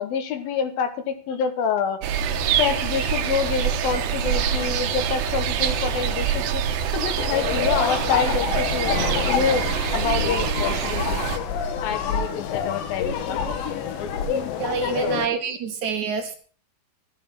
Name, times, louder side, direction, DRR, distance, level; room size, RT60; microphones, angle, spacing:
voice 1, 0.0-2.0 2.6-6.6 6.9-9.0 9.2-11.2 11.8-13.4 15.0-15.2, left 6 dB, 70° left, 9 dB, 2.7 m, -27 dB
sound 1, 2.0-11.4, right 8 dB, 80° right, 3.2 m, -25 dB
sound 2, 7.2-15.3, left 7 dB, 90° left, 3.8 m, -27 dB
voice 2, 14.6-16.3, right 5 dB, 65° right, 6 dB, 2.0 m, -26 dB
13.5 x 8.6 x 6.0 m, 0.43 s
omnidirectional pair, 4.9 m